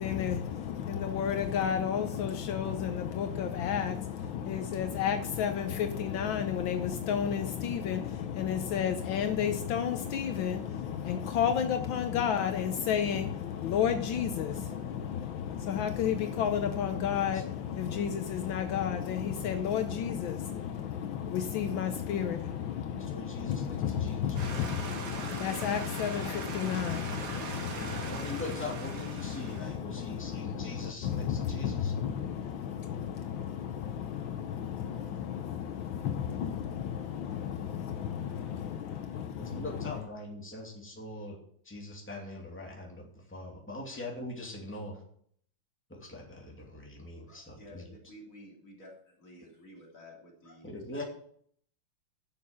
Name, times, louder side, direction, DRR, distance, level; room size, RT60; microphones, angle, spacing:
voice 1, 0.0-40.1, left 8 dB, 80° left, 1.6 m, -32 dB
voice 2, 22.8-24.3 27.6-31.9 39.4-41.4 41.7-45.0 45.9-47.8 50.6-51.0, left 1 dB, 5° left, 2.5 m, -42 dB
sound 1, 24.4-29.8, right 4 dB, 60° right, 2.2 m, -41 dB
voice 3, 47.3-48.9 49.2-51.0, equal, 40° left, 3.7 m, -52 dB
11.5 x 6.8 x 7.0 m
omnidirectional pair, 2.1 m